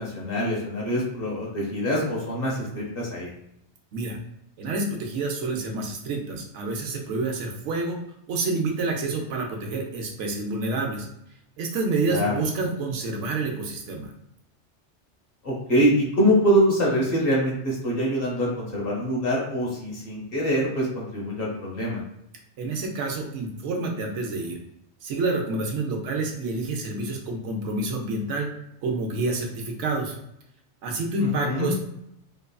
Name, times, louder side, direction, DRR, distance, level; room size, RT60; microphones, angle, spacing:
voice 1, 0.0-3.3 12.1-12.4 15.4-22.0 31.2-31.7, equal, 55° left, -3 dB, 1.0 m, -24 dB
voice 2, 4.6-8.0 8.3-11.1 11.6-14.1 22.6-24.6 25.0-28.5 28.8-30.2 30.8-31.8, right 3 dB, 85° right, 2 dB, 0.9 m, -28 dB
3.0 x 2.3 x 2.2 m, 0.78 s
omnidirectional pair, 1.2 m